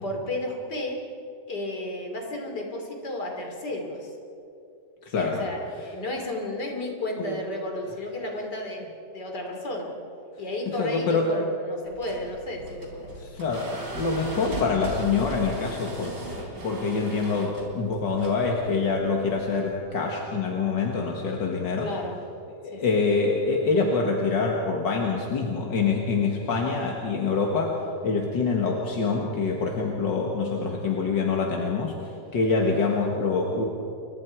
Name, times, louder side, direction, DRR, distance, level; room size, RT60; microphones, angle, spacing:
voice 1, 0.0-1.0 1.5-4.1 5.1-9.9 10.4-13.2 21.8-22.2 22.7-22.8, left 1 dB, 65° left, 2 dB, 3.7 m, -33 dB
voice 2, 5.1-5.5 7.2-7.4 10.7-11.3 13.2-13.7 14.0-16.2 16.6-21.9 22.6-27.8 28.0-33.6, left 4 dB, 85° left, 0 dB, 2.4 m, -25 dB
sound 1, 11.9-19.8, right 1 dB, 75° right, 4.4 m, -38 dB
29.5 x 23.5 x 4.7 m, 2.8 s
omnidirectional pair, 1.9 m